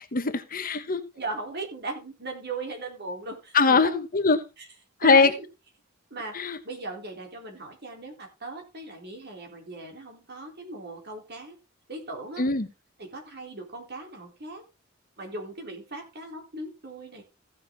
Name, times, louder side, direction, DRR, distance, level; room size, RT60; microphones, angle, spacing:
voice 1, 0.1-1.0 3.5-4.4 5.0-5.3 6.3-6.6 12.4-12.7, left 4 dB, 45° left, 10 dB, 1.1 m, -21 dB
voice 2, 1.1-3.6 3.8-3.9 4.6-4.7 5.0-5.5 6.1-11.6 11.9-12.5 13.0-14.6 15.2-17.2, right 2 dB, 55° right, 3 dB, 3.6 m, -38 dB
15.5 x 7.0 x 3.7 m, 0.27 s
head